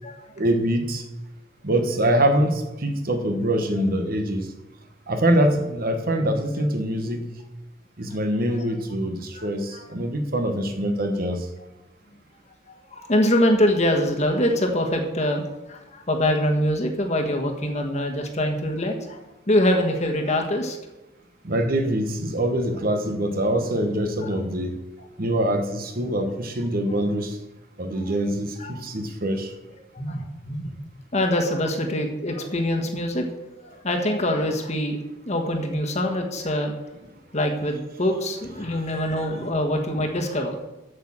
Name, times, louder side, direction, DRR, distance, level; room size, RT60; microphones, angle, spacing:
voice 1, 0.4-1.0 1.6-4.5 5.1-7.3 8.0-11.5 21.4-24.8 25.2-27.4 27.8-29.5, right 1 dB, 50° right, 6 dB, 1.2 m, -24 dB
voice 2, 9.3-9.8 12.7-19.2 19.5-20.8 28.6-28.7 29.9-30.7 31.1-33.3 33.6-35.0 35.3-36.7 37.3-40.6, left 1 dB, 35° left, 2 dB, 1.4 m, -24 dB
7.9 x 6.4 x 7.4 m, 0.99 s
head